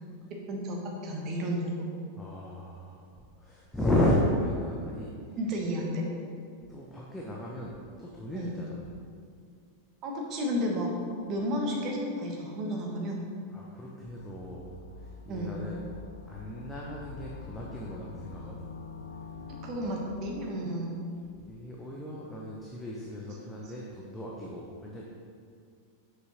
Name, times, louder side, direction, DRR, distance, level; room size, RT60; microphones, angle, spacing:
voice 1, 0.3-1.8 5.4-6.0 8.3-8.6 10.0-11.0 11.3-13.2 15.3-15.6 19.5-21.0 23.6-23.7, equal, 35° right, 0 dB, 1.3 m, -32 dB
voice 2, 2.2-3.0 3.4-5.1 6.7-8.8 13.5-14.7 15.2-15.8 16.3-18.5 21.5-25.1, left 1 dB, 10° left, -4 dB, 0.9 m, -33 dB
sound 1, 14.2-20.5, left 4 dB, 70° left, 0.5 m, -45 dB
6.4 x 5.8 x 4.4 m, 2.2 s
figure-of-eight pair, 90°, 0 cm